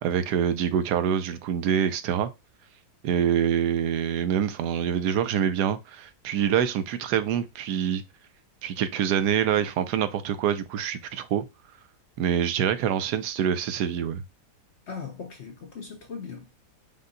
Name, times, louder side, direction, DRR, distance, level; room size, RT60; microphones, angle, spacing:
voice 1, 0.0-2.3 3.0-8.0 8.6-11.4 12.2-14.2, right 9 dB, 80° right, 1.2 m, -25 dB
voice 2, 14.9-16.6, left 5 dB, 60° left, 0.8 m, -39 dB
5.3 x 2.2 x 3.8 m
omnidirectional pair, 1.7 m